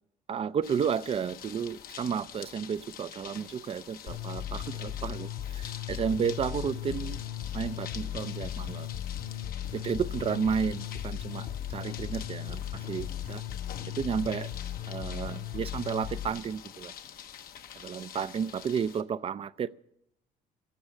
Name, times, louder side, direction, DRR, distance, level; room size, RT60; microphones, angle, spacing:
voice 1, 0.3-7.2 7.5-8.9 9.7-13.4 14.0-14.5 14.9-16.9 17.7-19.7, right 7 dB, 35° right, 17 dB, 0.5 m, -32 dB
sound 1, 0.6-19.0, left 9 dB, 60° left, 1.0 m, -47 dB
sound 2, 4.1-16.3, left 11 dB, 75° left, 3.3 m, -37 dB
15.0 x 7.2 x 9.8 m, 0.76 s
cardioid pair, 110°, 17 cm